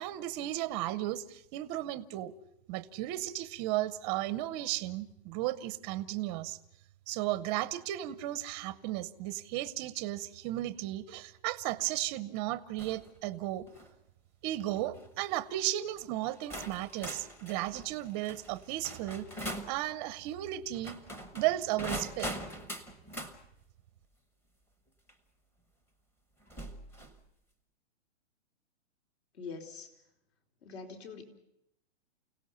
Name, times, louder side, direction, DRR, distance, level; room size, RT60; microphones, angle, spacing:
voice 1, 0.0-2.3 2.7-6.6 7.1-13.7 14.4-19.3 19.6-21.0 21.3-22.3, right 15 dB, 20° right, 14 dB, 0.7 m, -34 dB
sound 1, 12.8-13.1 13.6-13.9 14.8-15.0 15.9-16.0 16.5-19.8 20.7-23.4 25.1-25.2 26.5-27.2, equal, 5° left, 1.0 m, -42 dB
voice 2, 29.3-29.9 30.6-31.2, left 5 dB, 60° left, 4 dB, 4.5 m, -44 dB
29.5 x 17.5 x 5.6 m, 0.78 s
hypercardioid pair, 155°, 36 cm